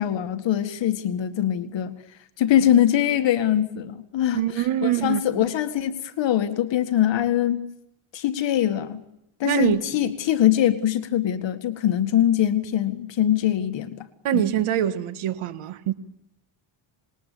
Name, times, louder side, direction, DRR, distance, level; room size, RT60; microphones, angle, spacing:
voice 1, 0.0-1.9 2.4-7.7 8.1-9.0 9.4-14.1 14.3-14.4, left 11 dB, 60° left, 2.0 m, -23 dB
voice 2, 4.3-5.5 9.5-10.1 14.2-15.9, right 11 dB, 90° right, 1.8 m, -24 dB
26.5 x 21.0 x 8.5 m
cardioid pair, 150°, 49 cm